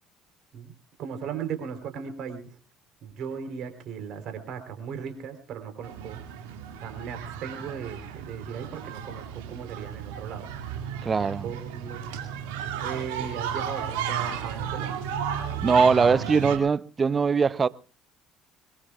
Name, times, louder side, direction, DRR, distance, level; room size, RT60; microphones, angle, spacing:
voice 1, 1.0-2.6 3.0-6.2 6.8-10.5 11.4-12.0 12.8-14.9, right 7 dB, 60° right, 3.7 m, -37 dB
sound 1, 5.8-16.6, right 8 dB, 80° right, 2.3 m, -34 dB
voice 2, 11.0-11.5 15.6-17.7, right 5 dB, 35° right, 0.7 m, -21 dB
23.0 x 22.0 x 2.4 m
hypercardioid pair, 55°, 0 cm